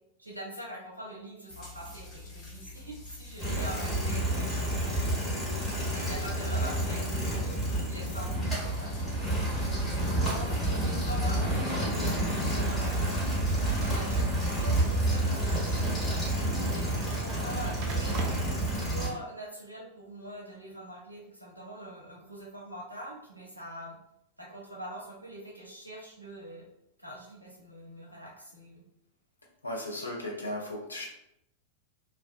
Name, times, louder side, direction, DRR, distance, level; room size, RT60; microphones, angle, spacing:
voice 1, 0.2-5.4 5.9-9.4 9.7-13.3 13.8-15.8 16.7-18.4 18.7-24.0 24.4-26.6 27.0-28.8, right 1 dB, 85° right, -3 dB, 0.6 m, -44 dB
sound 1, 1.5-16.1, left 3 dB, 30° left, 0.7 m, -46 dB
sound 2, 3.4-19.1, right 1 dB, 5° left, 1.3 m, -29 dB
sound 3, 11.4-18.4, right 4 dB, 40° right, 0.4 m, -46 dB
voice 2, 29.6-31.1, left 1 dB, 80° left, -2 dB, 0.6 m, -36 dB
2.5 x 2.1 x 2.5 m, 0.81 s
figure-of-eight pair, 90°, 0 cm